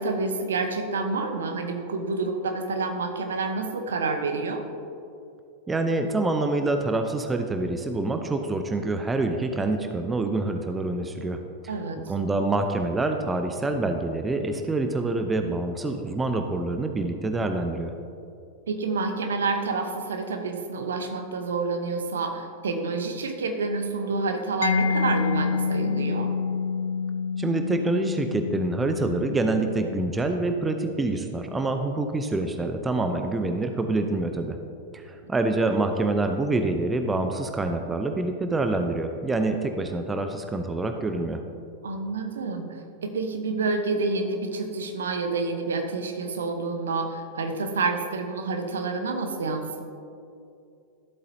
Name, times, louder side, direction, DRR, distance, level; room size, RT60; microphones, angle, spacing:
voice 1, 0.0-4.6 11.7-12.0 18.7-26.3 41.8-49.9, right 3 dB, 65° right, 5 dB, 0.9 m, -28 dB
voice 2, 5.7-11.4 12.1-17.9 27.4-34.6 34.9-41.4, right 2 dB, 15° right, 6 dB, 0.6 m, -26 dB
Mallet percussion, 24.6-32.2, left 5 dB, 70° left, 0.3 m, -29 dB
13.5 x 7.9 x 2.8 m, 2.5 s
figure-of-eight pair, 90°, 0 cm